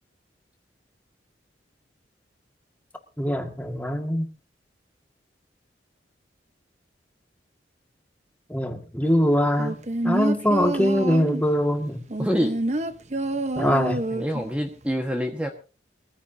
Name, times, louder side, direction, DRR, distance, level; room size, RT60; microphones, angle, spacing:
voice 1, 3.2-4.3 8.5-9.8 10.0-12.0 13.5-14.0, equal, 10° left, 4 dB, 1.7 m, -22 dB
sound 1, 9.6-11.5 12.1-14.5 14.8-14.9, right 2 dB, 40° right, 0.9 m, -27 dB
voice 2, 12.2-12.5 14.1-15.5, equal, 5° right, 3 dB, 1.3 m, -26 dB
22.5 x 15.0 x 2.7 m, 0.33 s
head